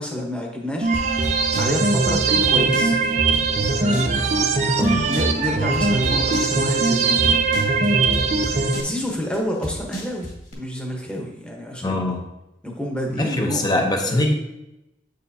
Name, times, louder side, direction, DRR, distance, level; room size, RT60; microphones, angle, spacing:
voice 1, 0.0-3.0 3.7-4.4 4.8-7.4 8.5-12.1 12.6-14.2, equal, 5° left, 0 dB, 1.1 m, -30 dB
sound 1, 0.8-8.8, right 4 dB, 40° right, 0.6 m, -20 dB
sound 2, 0.9-10.5, left 1 dB, 45° left, 2.1 m, -33 dB
voice 2, 11.8-12.2 13.1-14.3, left 1 dB, 25° left, 3 dB, 0.8 m, -22 dB
8.0 x 6.5 x 2.8 m, 0.90 s
head